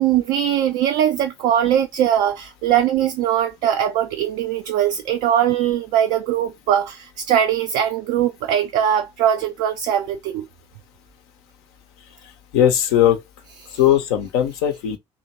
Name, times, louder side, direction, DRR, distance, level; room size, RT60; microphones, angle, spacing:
voice 1, 0.0-10.5 13.6-13.8, right 10 dB, 60° right, 0.4 m, -21 dB
voice 2, 12.5-13.2 13.7-15.0, left 11 dB, 65° left, 0.7 m, -18 dB
2.8 x 2.5 x 2.9 m
figure-of-eight pair, 50°, 15 cm